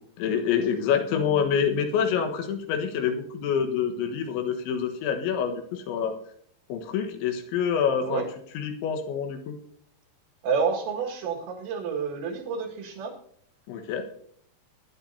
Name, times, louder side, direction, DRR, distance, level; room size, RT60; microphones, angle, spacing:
voice 1, 0.2-6.1 6.7-8.2 8.5-9.6 13.7-14.0, left 7 dB, 90° left, 5 dB, 3.7 m, -26 dB
voice 2, 10.4-13.1, right 5 dB, 85° right, -1 dB, 4.3 m, -29 dB
21.0 x 10.5 x 2.8 m, 0.64 s
omnidirectional pair, 5.2 m